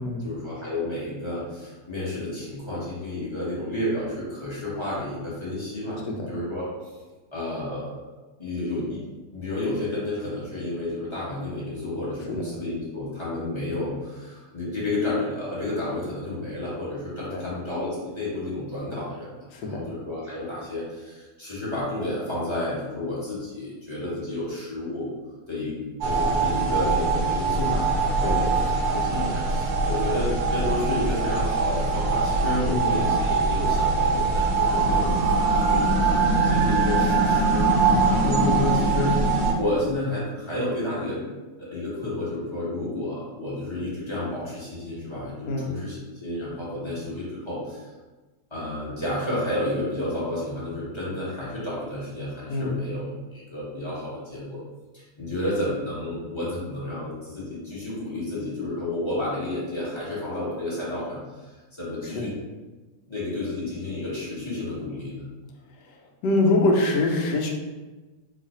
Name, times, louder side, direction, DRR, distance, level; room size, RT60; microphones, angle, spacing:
voice 1, 0.2-6.7 7.3-8.0 8.4-9.0 9.3-25.1 25.5-25.8 26.0-36.2 36.4-41.3 41.6-47.9 48.5-53.1 53.3-54.6 54.9-62.3 63.1-65.3, left 1 dB, 20° left, -9 dB, 0.8 m, -31 dB
voice 2, 19.5-19.8 28.2-28.4 32.7-32.9 37.9-38.2 45.5-45.7 52.5-52.8 62.2-62.3 65.9-66.0 66.2-67.5, left 2 dB, 75° left, 1 dB, 1.1 m, -24 dB
sound 1, 26.0-39.5, right 3 dB, 70° right, 1.0 m, -22 dB
sound 2, 31.5-40.0, right 3 dB, 30° right, 0.7 m, -41 dB
3.1 x 2.4 x 4.0 m, 1.2 s
omnidirectional pair, 2.0 m